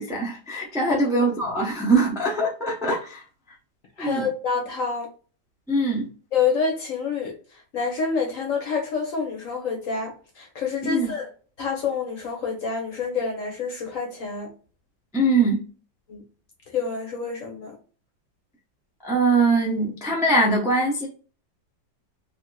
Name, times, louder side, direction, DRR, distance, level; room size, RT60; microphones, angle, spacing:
voice 1, 0.0-3.2 4.0-4.3 5.7-6.1 10.8-11.1 15.1-15.6 19.0-21.1, right 2 dB, 5° right, 0.3 m, -22 dB
voice 2, 4.0-5.1 6.3-7.3 7.7-11.3 11.6-14.5 16.1-16.2 16.7-17.7, left 5 dB, 55° left, 1.0 m, -27 dB
3.4 x 2.8 x 2.2 m
omnidirectional pair, 2.1 m